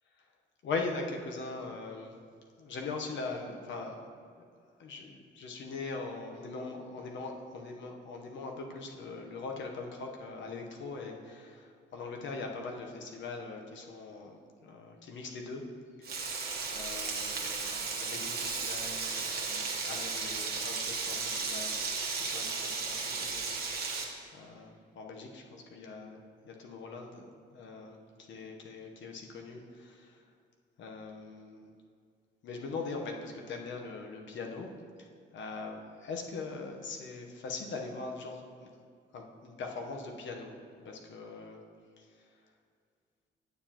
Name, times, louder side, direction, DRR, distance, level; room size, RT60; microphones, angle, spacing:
voice 1, 0.6-2.2 2.6-4.0 4.8-15.6 16.0-16.3 16.7-24.0 24.3-27.2 27.5-30.2 30.8-31.7 32.4-34.7 35.0-35.1 35.3-38.7 39.1-41.6 42.0-42.3, left 3 dB, 70° left, 2 dB, 1.1 m, -41 dB
Frying (food), 16.0-24.0, right 4 dB, 50° right, 1.2 m, -35 dB
9.3 x 6.9 x 3.0 m, 2.2 s
cardioid pair, 90°, 20 cm